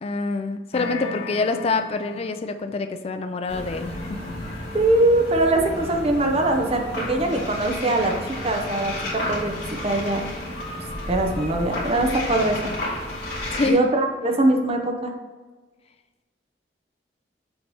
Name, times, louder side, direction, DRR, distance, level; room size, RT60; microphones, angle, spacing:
voice 1, 0.0-4.2 13.5-13.8, left 3 dB, 35° left, 8 dB, 0.3 m, -26 dB
sound 1, 0.7-2.7, left 4 dB, 60° left, 1.7 m, -35 dB
sound 2, 3.5-13.7, left 1 dB, 80° left, 2.1 m, -32 dB
voice 2, 4.7-8.1 8.4-9.5 9.8-10.3 11.1-12.7 13.7-15.1, right 2 dB, 35° right, 3 dB, 0.9 m, -22 dB
7.1 x 3.3 x 5.4 m, 1.3 s
head